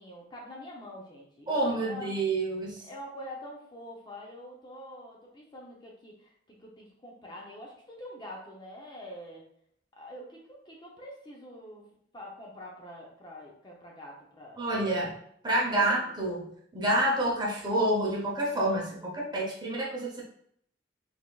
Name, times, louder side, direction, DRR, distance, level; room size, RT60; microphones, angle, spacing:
voice 1, 0.0-2.1 2.8-9.5 10.0-11.9 12.1-15.1 15.5-16.0, left 1 dB, 25° left, -2 dB, 0.7 m, -45 dB
voice 2, 1.5-2.8 14.6-15.1 15.4-16.5 16.7-20.2, right 1 dB, 20° right, -3 dB, 0.9 m, -28 dB
4.3 x 3.5 x 2.4 m, 0.67 s
head